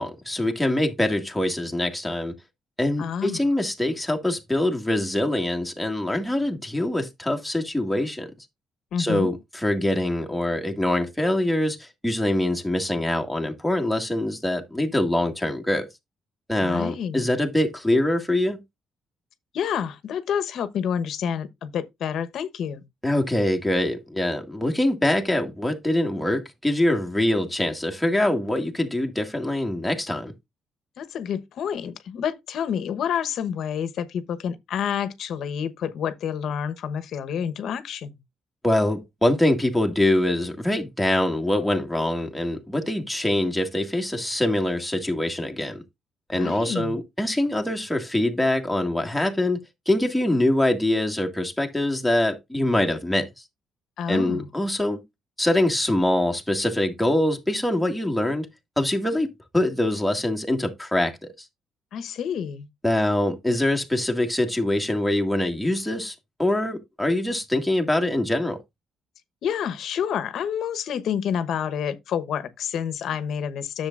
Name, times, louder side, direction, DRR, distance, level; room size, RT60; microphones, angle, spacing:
voice 1, 0.0-2.3 2.8-8.3 9.0-15.9 16.5-18.6 23.0-30.3 38.6-45.8 46.3-53.3 54.1-55.0 55.4-58.5 58.8-59.3 59.5-61.3 62.8-66.1 66.4-68.6, left 1 dB, ahead, 2.0 m, -24 dB
voice 2, 3.0-3.4 8.9-9.3 16.6-17.3 19.5-22.8 31.0-38.2 46.3-47.0 54.0-54.5 61.9-62.7 69.4-73.9, left 8 dB, 70° left, 1.0 m, -28 dB
10.5 x 7.1 x 2.5 m
cardioid pair, 90°, 0 cm